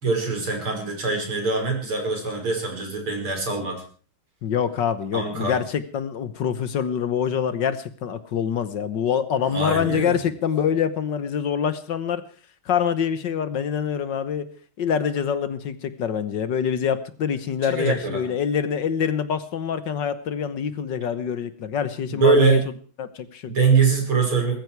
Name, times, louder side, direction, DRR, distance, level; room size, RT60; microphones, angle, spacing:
voice 1, 0.0-3.8 5.1-5.6 9.4-10.2 17.7-18.3 22.1-22.6 23.5-24.6, right 4 dB, 85° right, 2 dB, 6.1 m, -22 dB
voice 2, 4.4-12.2 12.7-14.5 14.8-22.6 23.0-23.5, left 7 dB, 60° left, 13 dB, 1.7 m, -25 dB
21.0 x 14.0 x 4.7 m, 0.41 s
omnidirectional pair, 2.3 m